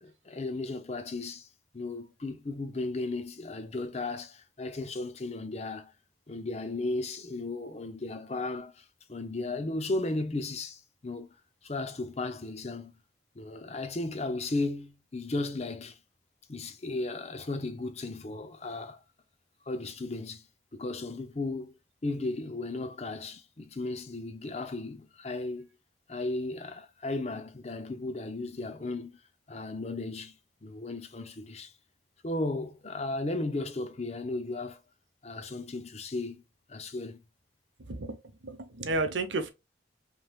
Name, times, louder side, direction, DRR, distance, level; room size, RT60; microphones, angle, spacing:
voice 1, 0.0-1.5 1.7-5.9 6.3-11.3 11.6-13.0 13.4-16.0 16.5-19.0 19.7-20.5 20.8-21.8 22.0-25.7 26.1-29.2 29.5-30.3 30.6-31.7 32.2-34.8 35.2-36.4 36.7-37.2, left 2 dB, 35° left, 0.6 m, -35 dB
voice 2, 37.9-38.2 38.4-39.5, right 2 dB, 85° right, 0.9 m, -31 dB
5.2 x 3.1 x 2.3 m
head